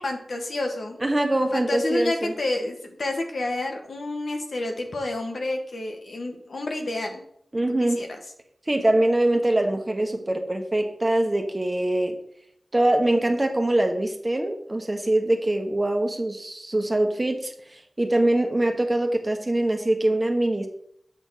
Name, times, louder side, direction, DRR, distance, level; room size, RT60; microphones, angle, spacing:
voice 1, 0.0-1.0 1.5-7.2 7.6-8.1, left 2 dB, 80° left, 3 dB, 1.3 m, -29 dB
voice 2, 1.0-2.3 7.5-8.0 8.7-12.2 12.7-20.7, right 1 dB, 30° right, 4 dB, 1.2 m, -23 dB
8.0 x 3.5 x 6.3 m, 0.69 s
wide cardioid pair, 55°, 0 cm